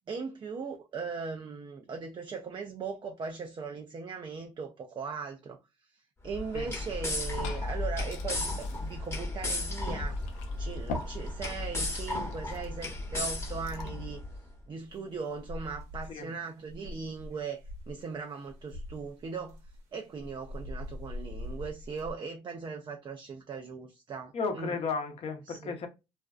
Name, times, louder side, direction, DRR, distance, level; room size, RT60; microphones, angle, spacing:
voice 1, 0.1-5.6 5.9-10.2 10.6-14.2 14.7-19.6 19.9-24.8 25.5-25.7, right 5 dB, 40° right, 0.4 m, -39 dB
sound 1, 6.2-14.4, left 2 dB, 20° left, 0.9 m, -34 dB
Liquid, 6.9-14.0, left 3 dB, 85° left, 0.5 m, -46 dB
sound 2, 14.8-16.2 16.6-18.0 18.5-19.8 20.2-22.1, left 1 dB, 75° right, 1.0 m, -43 dB
voice 2, 24.3-25.9, left 4 dB, 55° left, 0.7 m, -34 dB
2.5 x 2.2 x 2.2 m
supercardioid pair, 65°, 12 cm